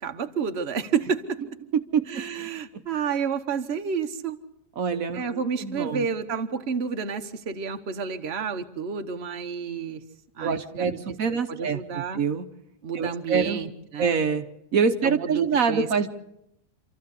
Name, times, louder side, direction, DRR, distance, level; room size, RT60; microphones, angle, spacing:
voice 1, 0.0-1.4 2.1-4.4 5.1-10.0 10.4-11.0 11.5-12.2 12.8-14.1 15.0-16.1, right 6 dB, 45° right, 6 dB, 1.4 m, -30 dB
voice 2, 1.9-2.8 4.8-6.1 10.4-12.5 12.9-13.6 14.0-14.5 14.7-16.1, right 6 dB, 70° right, 7 dB, 1.4 m, -26 dB
27.0 x 14.0 x 8.3 m, 0.80 s
omnidirectional pair, 1.5 m